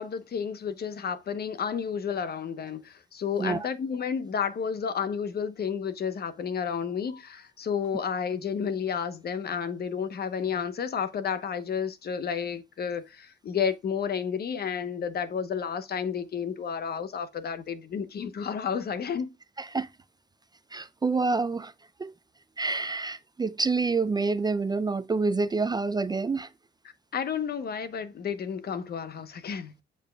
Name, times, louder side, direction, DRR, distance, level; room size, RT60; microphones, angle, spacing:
voice 1, 0.0-19.3 27.1-29.7, left 7 dB, 50° left, 0.9 m, -31 dB
voice 2, 19.6-19.9 20.7-21.7 22.0-22.1 22.6-26.5, right 4 dB, 20° right, 0.4 m, -27 dB
7.3 x 6.9 x 2.3 m
cardioid pair, 90°, 20 cm